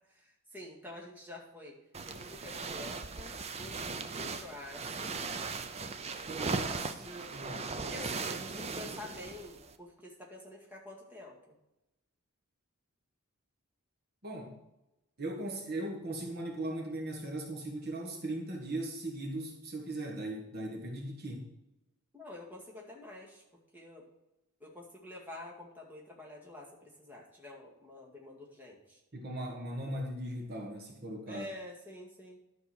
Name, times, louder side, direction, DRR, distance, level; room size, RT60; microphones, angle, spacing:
voice 1, 0.1-1.8 2.1-5.2 7.8-11.6 22.1-24.1 24.6-29.0 31.3-32.4, left 1 dB, 10° right, -3 dB, 2.0 m, -48 dB
sound 1, 1.9-9.8, right 4 dB, 30° right, 0.6 m, -38 dB
voice 2, 6.3-7.8 14.2-14.6 15.2-21.5 29.1-31.5, right 1 dB, 45° right, 0 dB, 1.5 m, -39 dB
11.5 x 5.3 x 6.2 m, 0.93 s
head